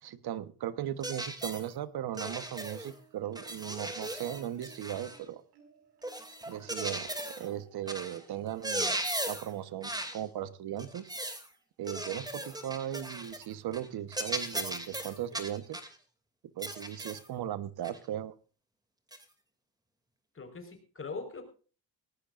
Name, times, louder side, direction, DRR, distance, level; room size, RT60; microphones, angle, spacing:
voice 1, 0.0-5.4 6.5-9.0 9.3-11.1 11.8-15.8 16.6-18.3, right 11 dB, 70° right, 14 dB, 1.3 m, -37 dB
sound 1, 1.0-1.7 2.2-2.9 3.4-5.2 6.0-7.5 7.9-8.2 8.5-9.5 9.8-10.2 10.8-11.5 11.9-13.5 13.7-13.9 14.1-15.9 16.6-17.3 17.8-18.0 19.1-19.2, right 1 dB, 10° right, 2.6 m, -37 dB
sound 2, 2.8-3.7 4.2-9.8 11.1-11.2 11.5-11.6, right 7 dB, 85° right, 5.1 m, -59 dB
voice 2, 20.3-21.4, left 4 dB, 30° left, 6 dB, 4.8 m, -41 dB
19.0 x 18.5 x 2.5 m, 0.37 s
cardioid pair, 110°, 39 cm